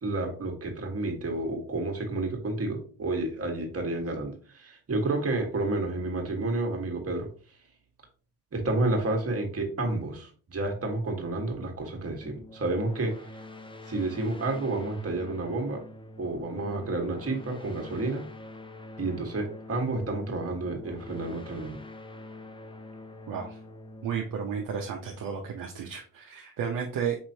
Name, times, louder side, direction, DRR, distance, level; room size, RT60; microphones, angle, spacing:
voice 1, 0.0-7.3 8.5-13.1 13.8-15.8 16.2-18.2 19.0-21.8, right 2 dB, 35° right, 2 dB, 1.6 m, -30 dB
sound 1, 12.2-25.5, left 1 dB, 15° left, 0.5 m, -46 dB
voice 2, 23.3-23.6 24.0-27.2, right 7 dB, 55° right, 1 dB, 0.8 m, -33 dB
5.4 x 3.0 x 2.8 m, 0.41 s
supercardioid pair, 60°, 40 cm